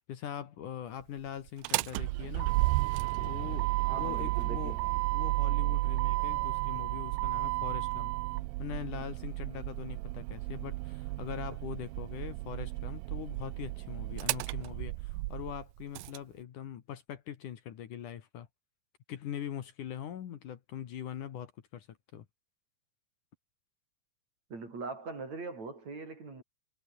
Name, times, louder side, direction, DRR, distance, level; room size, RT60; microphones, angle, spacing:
voice 1, 0.0-2.5 3.2-8.1 8.6-18.5 19.1-22.2, left 10 dB, 65° left, 3.0 m, -42 dB
Motor vehicle (road), 1.5-16.2, right 21 dB, 80° right, 2.3 m, -33 dB
voice 2, 3.8-4.8 24.5-26.4, right 3 dB, 50° right, 7.1 m, -41 dB
omnidirectional pair, 4.2 m